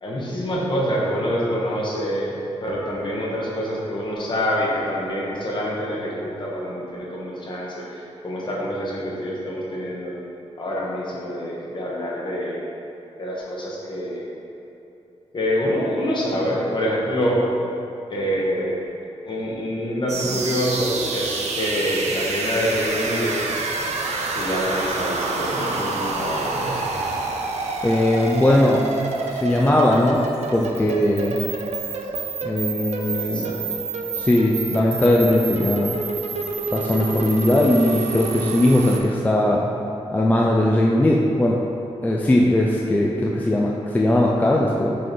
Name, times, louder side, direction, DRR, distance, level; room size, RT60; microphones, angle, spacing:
voice 1, 0.0-2.3 2.6-10.2 10.6-12.6 13.2-14.3 15.3-17.4 18.1-18.7 19.2-23.4 24.3-26.9 33.1-33.6, equal, 45° left, -5 dB, 1.2 m, -26 dB
sound 1, 20.1-39.0, right 3 dB, 80° right, 0.6 m, -28 dB
voice 2, 27.8-28.8 29.3-31.4 32.4-33.5 34.1-36.0 36.7-39.7 40.1-41.6 42.0-45.0, left 1 dB, 15° left, -3 dB, 0.4 m, -19 dB
6.2 x 3.8 x 4.3 m, 3.0 s
wide cardioid pair, 145°, 11 cm